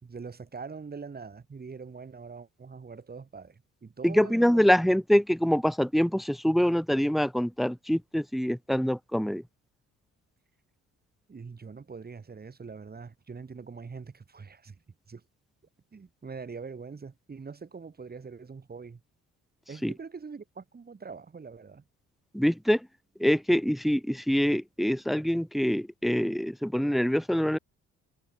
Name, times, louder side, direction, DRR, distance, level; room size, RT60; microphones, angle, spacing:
voice 1, 0.0-4.7 11.3-14.8 15.1-15.2 15.9-19.0 19.7-21.8, right 5 dB, 30° right, 3.4 m, -43 dB
voice 2, 4.0-9.4 19.8-19.9 22.3-22.9 23.2-27.6, equal, ahead, 1.0 m, -25 dB
cardioid pair, 90°, 30 cm